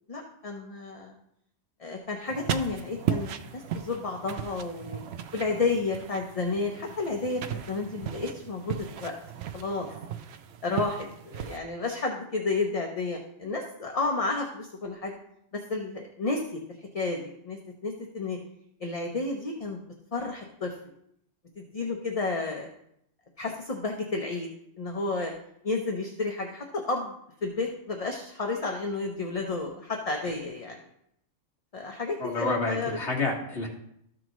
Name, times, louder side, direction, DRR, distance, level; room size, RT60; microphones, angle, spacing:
voice 1, 0.1-1.1 1.8-5.0 5.3-9.1 9.5-9.9 10.6-15.2 15.5-18.4 18.8-19.8 20.1-20.7 21.6-22.7 23.4-24.5 24.8-25.3 25.6-27.1 27.4-30.8 31.7-33.0, left 3 dB, 35° left, 2 dB, 0.7 m, -31 dB
sound 1, 2.3-11.6, right 8 dB, 65° right, 0.8 m, -36 dB
voice 2, 32.2-33.7, left 3 dB, 65° left, -2 dB, 2.0 m, -29 dB
13.5 x 6.1 x 3.0 m, 0.74 s
omnidirectional pair, 1.3 m